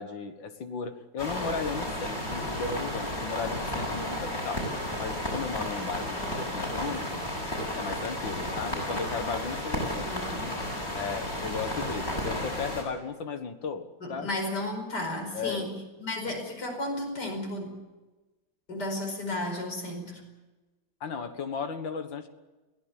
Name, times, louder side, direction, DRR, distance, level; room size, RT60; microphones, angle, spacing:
voice 1, 0.0-4.7 5.0-7.2 7.7-10.6 10.9-14.4 15.3-15.8 16.3-16.4 21.0-22.3, left 5 dB, 75° left, 8 dB, 2.3 m, -35 dB
sound 1, 1.2-12.8, left 1 dB, 30° left, 7.6 m, -33 dB
voice 2, 10.0-10.5 14.0-15.7 16.0-17.8 18.7-20.2, left 1 dB, 55° left, 3 dB, 5.6 m, -33 dB
23.5 x 17.0 x 8.4 m, 1.2 s
omnidirectional pair, 2.1 m